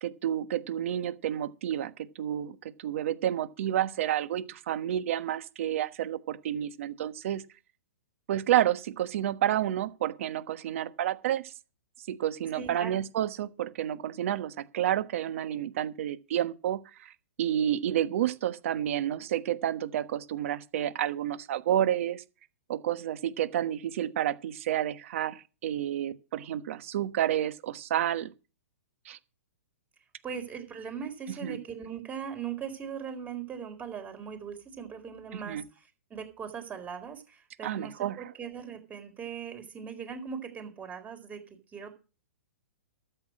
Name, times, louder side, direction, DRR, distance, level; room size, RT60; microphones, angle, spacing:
voice 1, 0.0-7.4 8.3-11.5 12.1-17.1 17.4-22.2 22.7-28.3 29.0-29.2 31.4-31.6 35.5-35.6 37.6-38.1, right 11 dB, 60° right, 1.3 m, -30 dB
voice 2, 12.5-13.0 30.2-42.0, right 7 dB, 20° right, 4.2 m, -40 dB
13.0 x 8.2 x 6.2 m
hypercardioid pair, 120°, 8 cm